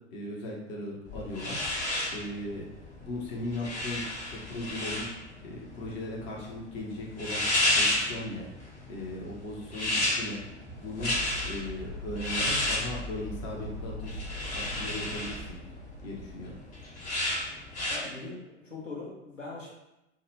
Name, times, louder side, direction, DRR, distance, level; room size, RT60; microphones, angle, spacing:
voice 1, 0.1-1.6 2.1-2.7 3.0-4.0 4.3-5.0 5.4-7.4 7.7-8.5 8.9-10.4 10.8-11.1 11.4-15.6 16.0-16.6, left 1 dB, 30° left, -2 dB, 0.7 m, -38 dB
sound 1, 1.1-18.0, left 1 dB, 55° left, 1.1 m, -32 dB
sound 2, 9.4-16.9, left 1 dB, 10° right, 0.4 m, -42 dB
voice 2, 17.9-19.7, left 3 dB, 85° left, -3 dB, 0.8 m, -41 dB
2.2 x 2.1 x 3.1 m, 0.94 s
figure-of-eight pair, 85°, 37 cm